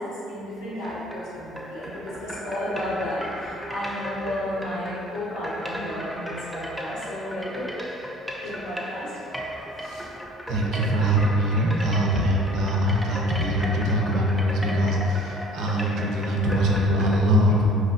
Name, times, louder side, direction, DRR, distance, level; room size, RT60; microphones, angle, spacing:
voice 1, 0.0-7.8 8.4-9.2 9.8-10.1, left 1 dB, 85° left, -8 dB, 0.9 m, -33 dB
sound 1, 0.7-17.2, equal, ahead, 0.3 m, -36 dB
voice 2, 10.5-17.8, equal, 75° right, -1 dB, 0.4 m, -22 dB
2.7 x 2.2 x 2.5 m, 2.7 s
supercardioid pair, 65°, 0 cm